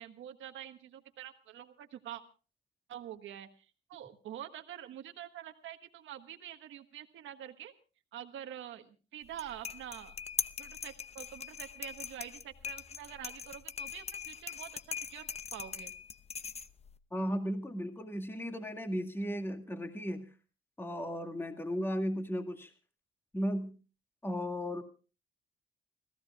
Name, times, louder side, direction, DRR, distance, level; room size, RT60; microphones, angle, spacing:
voice 1, 0.0-2.2 2.9-7.7 8.1-10.1 10.6-15.9, right 11 dB, 80° right, 6 dB, 1.4 m, -46 dB
sound 1, 9.2-17.0, left 6 dB, 30° left, 0.7 m, -41 dB
voice 2, 17.1-20.3 20.8-22.7 23.3-23.7 24.2-24.8, equal, 10° left, 5 dB, 2.0 m, -35 dB
30.0 x 15.5 x 2.4 m, 0.36 s
cardioid pair, 90°, 20 cm